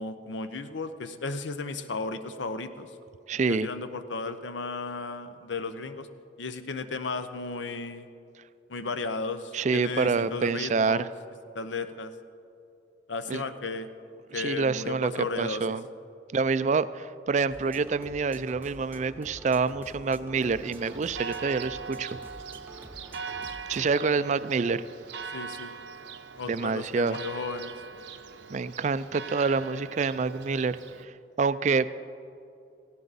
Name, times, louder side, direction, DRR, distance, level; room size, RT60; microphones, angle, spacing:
voice 1, 0.0-2.9 3.5-6.1 6.4-8.1 8.7-11.1 11.5-12.1 13.1-13.9 14.3-15.8 25.3-25.7 26.4-27.8, left 3 dB, 85° left, 10 dB, 0.8 m, -34 dB
voice 2, 3.3-3.7 9.5-11.1 13.3-13.4 14.3-15.8 16.3-22.1 23.7-24.8 26.5-27.2 28.5-30.8 31.4-31.9, right 4 dB, 40° right, 15 dB, 0.4 m, -27 dB
sound 1, 17.5-23.9, right 1 dB, 10° right, 0.7 m, -48 dB
Church bell, 20.4-31.0, right 5 dB, 75° right, 0.8 m, -41 dB
17.5 x 16.0 x 4.1 m, 2.6 s
head